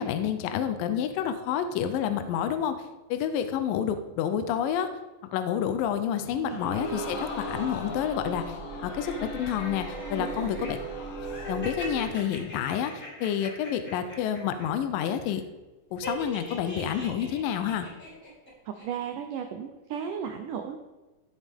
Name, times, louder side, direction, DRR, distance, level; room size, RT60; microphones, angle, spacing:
voice 1, 0.0-2.8 3.1-4.9 5.3-8.6 8.8-10.8 11.5-15.4 15.9-17.9, left 9 dB, 80° left, 8 dB, 2.0 m, -29 dB
Crowd, 6.4-11.9 12.3-12.4, left 4 dB, 55° left, 1.4 m, -41 dB
sound 1, 6.6-12.0, right 4 dB, 60° right, 1.3 m, -38 dB
sound 2, 9.0-10.7 11.2-14.6 14.9-15.3 16.0-18.5 18.7-18.8, left 1 dB, 20° left, 3.9 m, -42 dB
voice 2, 10.2-10.5 18.7-20.8, right 8 dB, 90° right, 6 dB, 1.8 m, -35 dB
15.5 x 7.6 x 3.6 m, 1.1 s
omnidirectional pair, 4.7 m